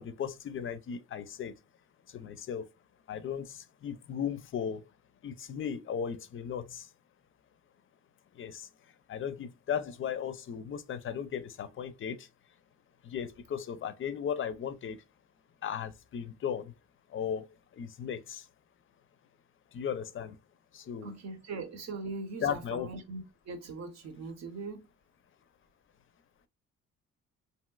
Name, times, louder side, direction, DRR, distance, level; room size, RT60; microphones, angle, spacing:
voice 1, 0.0-1.5 2.1-2.7 3.1-4.8 5.2-6.9 8.4-8.7 9.1-12.3 13.0-15.0 15.6-16.7 17.1-17.5 17.8-18.4 19.7-20.3 20.7-21.1 22.4-22.9, left 8 dB, 45° left, 0.5 m, -36 dB
voice 2, 21.0-24.9, right 3 dB, 60° right, 0.8 m, -41 dB
3.1 x 2.8 x 2.2 m
cardioid pair, 90°, 30 cm